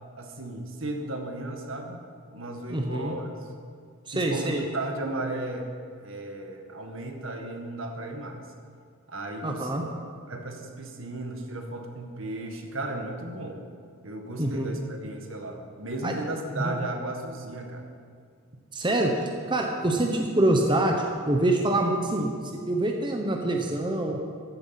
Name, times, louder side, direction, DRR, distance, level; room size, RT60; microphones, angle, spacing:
voice 1, 0.2-2.0 2.3-3.4 4.1-8.4 9.1-9.7 10.3-13.6 14.0-17.9, right 2 dB, 65° right, 4 dB, 1.8 m, -35 dB
voice 2, 2.7-3.1 4.1-4.7 9.4-9.9 14.4-14.7 16.0-16.1 16.6-16.7 18.7-22.3 22.7-24.2, right 1 dB, 20° right, 2 dB, 1.0 m, -25 dB
15.0 x 12.0 x 5.9 m, 2.2 s
head